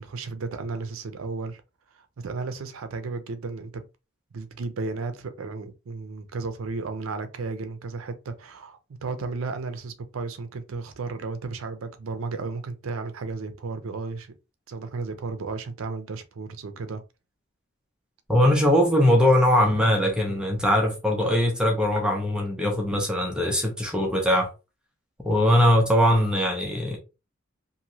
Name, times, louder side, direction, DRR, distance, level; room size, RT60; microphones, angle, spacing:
voice 1, 0.0-1.6 1.9-3.8 4.3-14.3 14.7-17.0 20.3-20.4 22.9-23.0, right 4 dB, 80° right, 0.5 m, -34 dB
voice 2, 18.3-24.5 25.2-27.0, left 1 dB, 5° right, 0.5 m, -21 dB
3.0 x 2.6 x 2.7 m
head